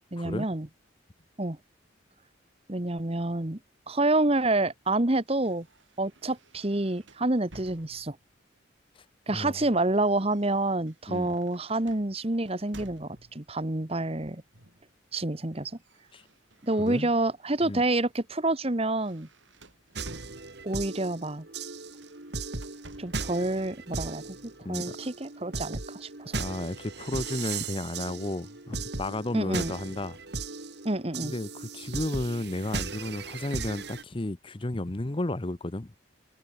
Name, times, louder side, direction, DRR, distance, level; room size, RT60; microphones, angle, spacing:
voice 1, 0.1-0.7 1.4-1.6 2.7-3.6 3.9-5.7 6.0-8.2 9.3-14.4 15.1-15.7 16.6-19.3 20.6-21.5 23.0-24.2 24.7-26.4 29.3-29.7 30.8-31.3, right 2 dB, 30° right, 1.4 m, -28 dB
sound 1, 5.3-8.4 9.3-13.5 14.5-14.9 15.2-17.5 18.0-18.2 18.6-20.9 21.9-23.4, right 1 dB, 80° right, 5.6 m, -54 dB
voice 2, 16.8-17.1 17.6-17.8 24.6-25.0 26.3-30.2 31.2-36.0, left 2 dB, 25° left, 0.8 m, -33 dB
sound 2, 19.9-34.0, right 4 dB, 60° right, 2.1 m, -37 dB
head